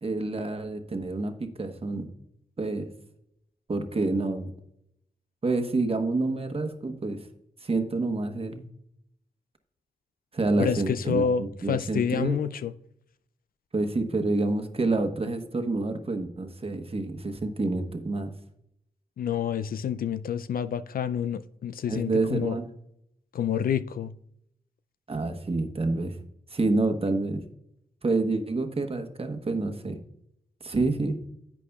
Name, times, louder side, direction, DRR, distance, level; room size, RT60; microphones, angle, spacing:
voice 1, 0.0-2.1 2.6-2.9 3.7-4.5 5.4-7.2 7.6-8.6 10.3-12.4 13.7-18.3 21.9-22.7 25.1-26.1 26.5-27.4 28.0-30.0 30.6-31.2, right 3 dB, 40° right, 1.1 m, -28 dB
voice 2, 10.6-12.7 19.2-22.6 23.3-24.1, left 7 dB, 75° left, 0.4 m, -28 dB
11.0 x 8.2 x 2.3 m
cardioid pair, 60°, 15 cm